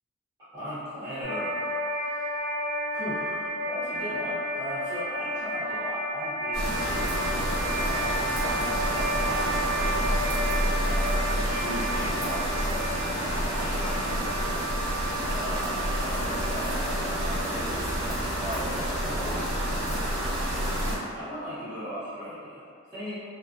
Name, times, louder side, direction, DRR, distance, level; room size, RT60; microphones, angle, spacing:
voice 1, 0.5-1.6 2.0-2.3 2.9-7.2 7.7-10.1 10.7-14.3 15.3-19.4 21.1-23.1, equal, 20° right, -18 dB, 0.9 m, -38 dB
sound 1, 1.2-20.5, right 1 dB, 65° left, 0.5 m, -33 dB
sound 2, 6.5-21.0, equal, 65° right, 0.6 m, -29 dB
2.3 x 2.2 x 2.4 m, 2.3 s
head